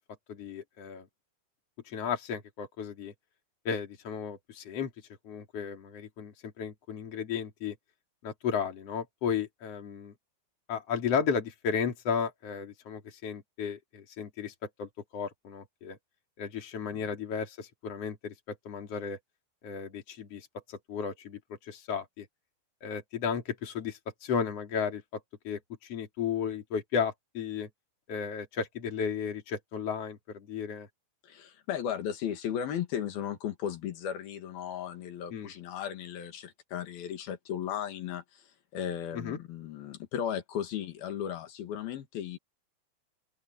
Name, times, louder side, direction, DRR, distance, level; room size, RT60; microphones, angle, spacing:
voice 1, 0.3-1.1 1.9-3.1 3.7-4.9 5.2-7.8 8.2-10.1 10.7-14.5 14.8-16.0 16.4-19.2 19.6-21.4 21.7-22.3 22.8-27.7 28.1-30.9 35.3-35.5 39.1-39.4, left 6 dB, 45° left, 3.8 m, -34 dB
voice 2, 31.2-42.4, left 9 dB, 85° left, 3.9 m, -36 dB
open air
omnidirectional pair, 4.2 m